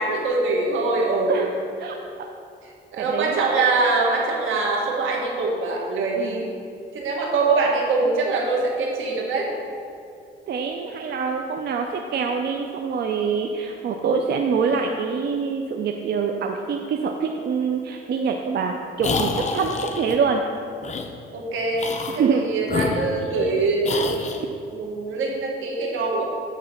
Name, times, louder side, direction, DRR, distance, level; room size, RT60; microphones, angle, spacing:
voice 1, 0.0-1.5 2.9-6.5 6.9-9.5 21.3-21.8 22.1-24.2 24.7-26.2, right 3 dB, 80° right, -1 dB, 1.6 m, -23 dB
voice 2, 1.8-2.3 3.0-3.4 6.2-6.4 10.5-20.4 22.1-22.4, right 5 dB, 55° right, 3 dB, 0.5 m, -25 dB
sound 1, 19.0-20.2 20.8-21.1 21.7-22.2 22.6-23.5 23.8-24.4, left 4 dB, 35° left, 0.7 m, -28 dB
9.4 x 3.3 x 6.8 m, 2.4 s
cardioid pair, 90°, 20 cm